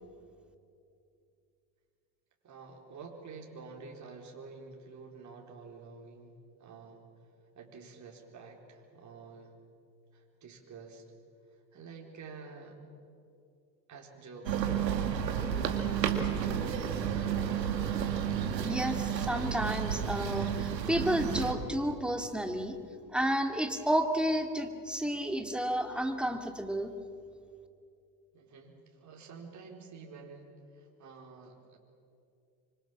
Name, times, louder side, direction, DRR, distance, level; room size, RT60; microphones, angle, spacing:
voice 1, 2.4-6.3 6.6-7.0 7.5-9.5 10.1-11.0 11.5-12.8 13.9-15.0 28.3-31.8, right 4 dB, 35° right, 0 dB, 4.4 m, -49 dB
sound 1, 14.4-21.5, right 8 dB, 85° right, 2.0 m, -31 dB
voice 2, 18.6-22.7 23.1-26.9, right 1 dB, ahead, 5 dB, 2.5 m, -31 dB
25.0 x 24.5 x 7.6 m, 2.6 s
hypercardioid pair, 75°, 49 cm